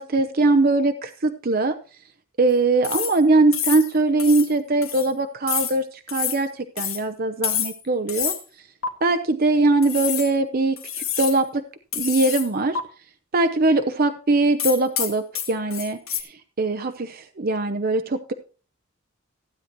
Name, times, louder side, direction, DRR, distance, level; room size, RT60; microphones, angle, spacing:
voice 1, 0.0-1.8 2.4-8.3 9.0-11.6 11.9-12.8 13.3-18.3, right 2 dB, 45° right, 9 dB, 0.7 m, -21 dB
sound 1, 2.8-3.2 3.5-3.9 4.2-4.5 4.8-5.1 5.5-5.8 6.1-6.4 6.8-7.0 7.4-7.8 8.1-8.4 8.8-8.9 9.8-10.3 10.8-11.4 11.9-12.5 12.7-12.8 14.6-16.2, left 8 dB, 90° left, 2.0 m, -27 dB
15.5 x 9.5 x 3.0 m, 0.36 s
head